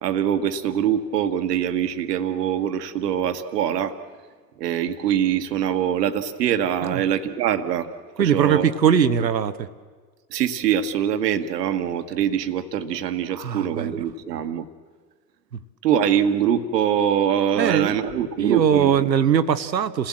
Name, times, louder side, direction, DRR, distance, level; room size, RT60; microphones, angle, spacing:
voice 1, 0.0-3.9 4.6-7.9 8.2-8.6 9.2-9.3 10.3-14.7 15.8-19.3, right 9 dB, 70° right, 1.5 m, -23 dB
voice 2, 8.2-9.7 13.4-14.0 17.6-18.0 18.4-20.1, right 8 dB, 90° right, 1.0 m, -21 dB
28.0 x 16.0 x 7.6 m
hypercardioid pair, 85°, 49 cm